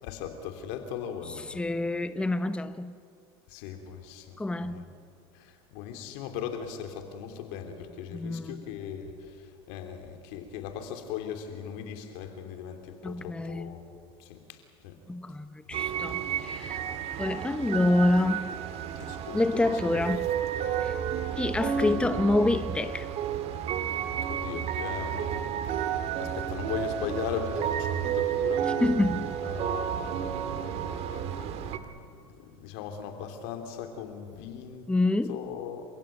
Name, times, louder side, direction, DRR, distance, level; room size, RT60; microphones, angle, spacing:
voice 1, 0.0-1.7 3.5-4.9 5.4-9.1 9.7-13.8 14.2-14.4 14.8-15.0 18.9-19.4 21.8-22.1 23.8-23.9 24.3-25.5 26.2-28.7 29.4-31.5 32.4-34.8 35.3-35.8, left 8 dB, 70° left, 3.2 m, -38 dB
voice 2, 1.3-3.0 4.4-4.9 8.1-8.6 13.0-13.8 15.1-16.8 17.2-18.5 19.3-20.3 20.8-21.0 21.4-23.1 28.6-29.4 34.9-35.4, left 2 dB, 10° left, 0.8 m, -27 dB
sound 1, 15.7-31.8, right 8 dB, 55° right, 1.8 m, -31 dB
28.0 x 16.0 x 9.3 m
supercardioid pair, 95°, 13 cm